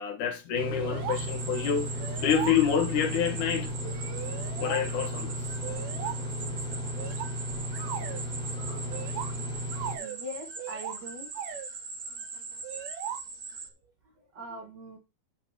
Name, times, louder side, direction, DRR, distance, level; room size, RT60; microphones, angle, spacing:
voice 1, 0.0-1.9 2.2-3.7 4.6-5.4, left 8 dB, 85° left, 3.0 m, -27 dB
sound 1, 0.5-10.0, equal, ahead, 3.2 m, -35 dB
sound 2, 0.7-1.2 1.6-1.7 2.0-3.0 3.8-4.9 5.6-6.2 7.0-8.2 8.9-10.2 10.6-11.0 11.4-11.7 12.6-13.2, right 10 dB, 75° right, 2.0 m, -38 dB
sound 3, 1.1-13.7, right 4 dB, 55° right, 1.0 m, -41 dB
voice 2, 8.5-8.9 9.9-11.3 14.3-15.0, equal, 35° right, 2.6 m, -42 dB
6.1 x 5.7 x 6.4 m
omnidirectional pair, 3.5 m